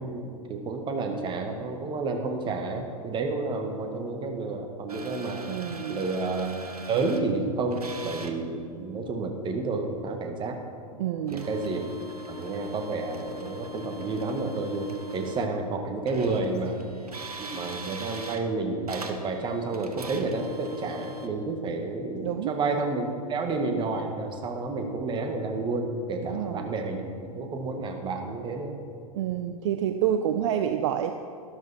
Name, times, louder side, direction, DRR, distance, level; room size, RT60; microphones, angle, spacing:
voice 1, 0.0-5.4 5.9-6.6 6.9-10.6 11.3-11.9 12.3-16.7 17.4-28.8, right 3 dB, 25° right, 4 dB, 1.8 m, -30 dB
sound 1, 4.9-7.2 7.7-8.4 11.3-15.5 16.1-18.4 18.9-21.3, right 1 dB, 90° right, 1.2 m, -41 dB
voice 2, 5.5-6.0 11.0-11.5 22.2-22.5 26.2-26.7 29.1-31.1, right 10 dB, 55° right, 8 dB, 0.7 m, -28 dB
13.0 x 12.5 x 4.4 m, 2.3 s
figure-of-eight pair, 105°, 19 cm